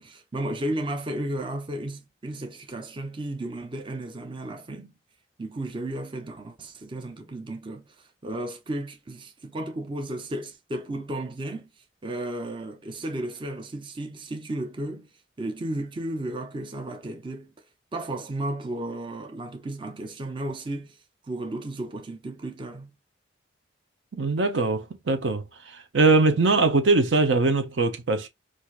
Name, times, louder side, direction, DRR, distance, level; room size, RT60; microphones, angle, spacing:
voice 1, 0.0-4.9 5.4-11.7 12.0-15.1 15.4-17.5 17.9-21.0 21.3-22.9, right 1 dB, 25° right, 0.6 m, -34 dB
voice 2, 24.1-28.3, right 3 dB, 70° right, 0.7 m, -22 dB
4.4 x 2.5 x 2.4 m
head